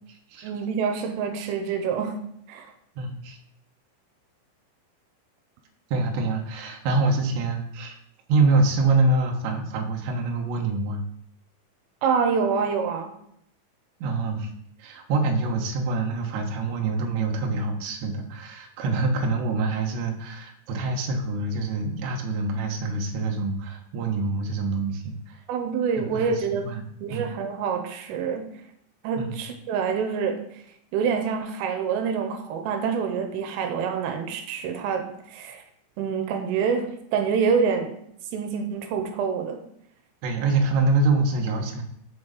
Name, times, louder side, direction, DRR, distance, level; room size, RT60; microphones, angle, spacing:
voice 1, 0.4-2.2 2.5-2.7 12.0-13.1 25.5-26.7 27.0-28.5 29.0-30.4 30.9-35.1 35.3-35.6 36.0-38.0 38.3-39.6, right 6 dB, 85° right, 5 dB, 3.5 m, -26 dB
voice 2, 3.0-3.4 5.9-8.0 8.3-11.0 14.0-14.5 14.8-25.4 26.0-27.3 29.2-29.4 40.2-41.8, right 3 dB, 70° right, 2 dB, 3.1 m, -25 dB
7.2 x 6.1 x 6.5 m, 0.73 s
omnidirectional pair, 5.7 m